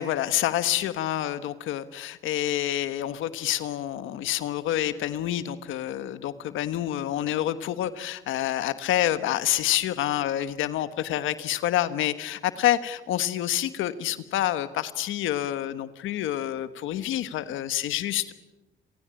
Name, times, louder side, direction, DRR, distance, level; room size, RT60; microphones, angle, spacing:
voice 1, 0.0-18.3, left 12 dB, 85° left, 13 dB, 1.3 m, -28 dB
30.0 x 17.5 x 8.8 m, 1.0 s
cardioid pair, 90°, 20 cm